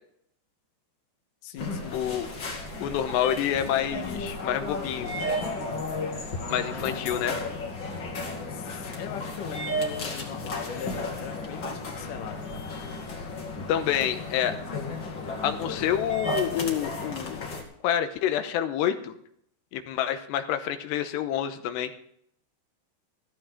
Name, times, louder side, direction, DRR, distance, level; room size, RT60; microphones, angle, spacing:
voice 1, 1.4-2.1 6.9-7.0 8.5-12.9, left 7 dB, 65° left, 5 dB, 2.3 m, -40 dB
sound 1, 1.6-17.6, left 2 dB, 40° left, 2.1 m, -34 dB
voice 2, 1.9-2.3 2.8-5.1 6.5-7.3 13.7-14.6 15.4-17.4 17.8-19.1 19.7-21.9, left 10 dB, 85° left, 8 dB, 3.1 m, -27 dB
15.0 x 14.0 x 3.8 m, 0.69 s
omnidirectional pair, 4.9 m